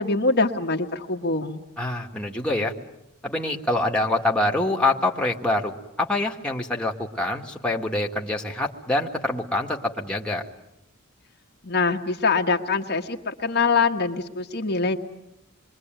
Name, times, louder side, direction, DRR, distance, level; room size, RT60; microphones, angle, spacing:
voice 1, 0.0-1.6 11.6-15.0, left 4 dB, 50° left, 3 dB, 1.4 m, -24 dB
voice 2, 1.8-2.7 3.2-10.4, left 2 dB, 5° left, 0 dB, 2.0 m, -25 dB
27.5 x 23.0 x 9.2 m, 0.85 s
head